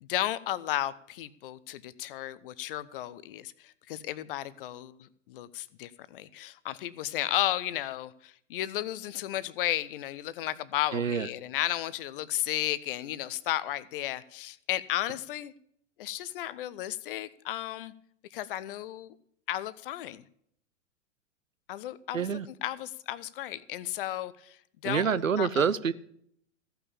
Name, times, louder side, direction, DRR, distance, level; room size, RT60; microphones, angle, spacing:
voice 1, 0.0-15.5 16.0-17.9 18.3-19.2 19.5-20.2 21.7-22.3 22.6-25.6, left 14 dB, 45° left, 17 dB, 0.7 m, -34 dB
voice 2, 10.9-11.3 22.1-22.5 24.8-25.9, right 6 dB, 85° right, 16 dB, 0.7 m, -27 dB
15.0 x 5.7 x 8.5 m, 0.68 s
figure-of-eight pair, 100°, 39 cm